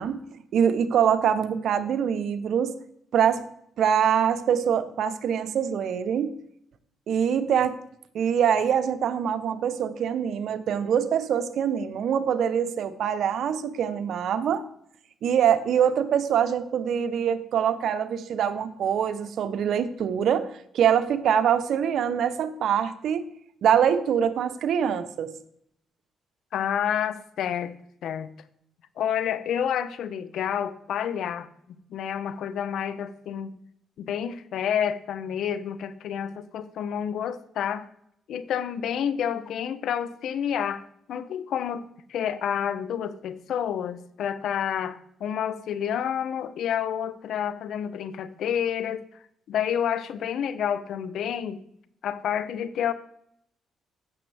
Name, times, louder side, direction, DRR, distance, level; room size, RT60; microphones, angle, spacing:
voice 1, 0.0-2.7 3.1-3.4 3.8-6.3 7.1-7.8 8.1-14.6 15.2-23.3 23.6-25.3, right 8 dB, 70° right, 11 dB, 0.8 m, -24 dB
voice 2, 26.5-27.7 28.0-28.3 29.0-31.5 31.9-33.5 34.0-37.9 38.3-40.8 41.1-49.0 49.5-51.6 52.0-52.9, left 9 dB, 75° left, 13 dB, 0.7 m, -29 dB
15.5 x 6.2 x 3.4 m, 0.70 s
cardioid pair, 90°, 0 cm